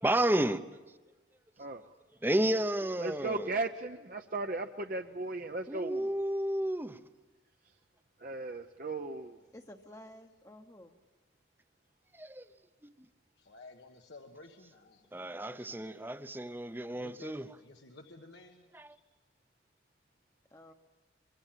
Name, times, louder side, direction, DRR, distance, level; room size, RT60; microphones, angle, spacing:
voice 1, 0.0-0.6 2.2-3.6 5.7-7.0 12.1-12.5 12.8-12.9 15.1-17.5 18.7-19.0, right 1 dB, 10° right, 12 dB, 0.7 m, -31 dB
voice 2, 3.0-6.1 8.2-9.4, right 2 dB, 50° right, 5 dB, 0.7 m, -36 dB
voice 3, 9.5-11.0 20.5-20.7, left 1 dB, 20° left, 3 dB, 0.9 m, -52 dB
voice 4, 13.4-16.0 16.9-19.0, left 2 dB, 85° left, 4 dB, 1.4 m, -54 dB
24.0 x 23.5 x 7.5 m, 1.2 s
head